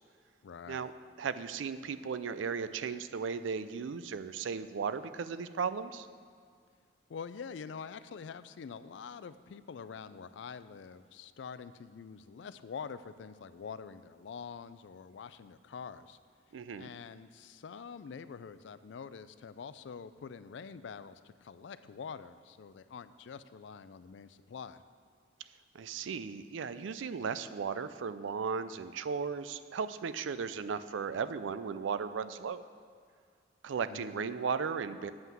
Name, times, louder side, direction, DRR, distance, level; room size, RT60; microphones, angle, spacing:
voice 1, 0.4-0.9 7.1-16.2 16.8-24.8 33.9-34.3, left 6 dB, 75° left, 14 dB, 0.4 m, -46 dB
voice 2, 1.2-6.1 16.5-16.9 25.7-32.6 33.6-35.1, right 6 dB, 85° right, 13 dB, 0.4 m, -36 dB
7.8 x 5.6 x 7.3 m, 2.1 s
head